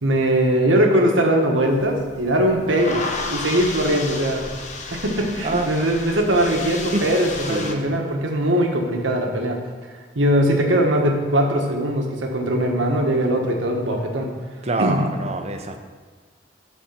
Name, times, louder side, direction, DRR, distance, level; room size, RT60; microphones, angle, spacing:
voice 1, 0.0-3.0 3.3-4.5 4.9-9.6 10.1-14.3 14.8-15.0, right 1 dB, 85° right, 1 dB, 1.4 m, -20 dB
sound 1, 1.7-7.7, left 3 dB, 40° left, 0.9 m, -32 dB
voice 2, 7.5-7.9 14.6-15.8, right 2 dB, 35° right, 6 dB, 0.7 m, -25 dB
11.5 x 4.3 x 5.9 m, 1.5 s
head